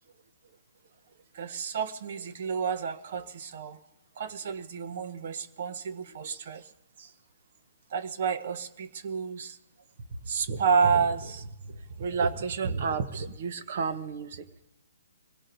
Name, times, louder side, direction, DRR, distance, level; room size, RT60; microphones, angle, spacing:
voice 1, 1.3-3.8 4.2-6.6 7.0-7.1 7.9-9.6 10.2-14.5, right 5 dB, 50° right, 11 dB, 0.9 m, -30 dB
25.0 x 17.5 x 2.7 m, 0.86 s
hypercardioid pair, 140°, 0 cm